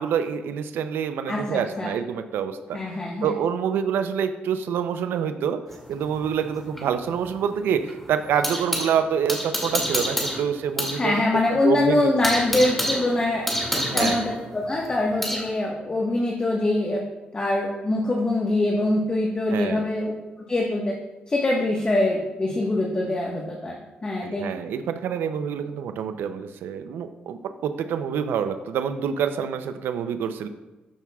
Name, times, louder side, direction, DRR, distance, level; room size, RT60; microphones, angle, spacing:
voice 1, 0.0-2.8 3.2-5.6 5.9-11.1 11.5-12.1 13.7-14.2 19.5-19.8 24.2-30.5, right 7 dB, 85° right, 9 dB, 0.5 m, -27 dB
voice 2, 1.3-1.9 2.7-3.3 11.0-13.4 13.9-17.0 17.3-20.1 20.5-20.9 21.3-23.8 24.0-24.4, left 2 dB, 30° left, -2 dB, 1.3 m, -24 dB
sound 1, 5.7-8.9 9.3-11.0 11.3-11.4 11.8-15.5, equal, 5° left, 2.2 m, -28 dB
12.5 x 6.1 x 2.3 m, 1.1 s
cardioid pair, 85°, 4 cm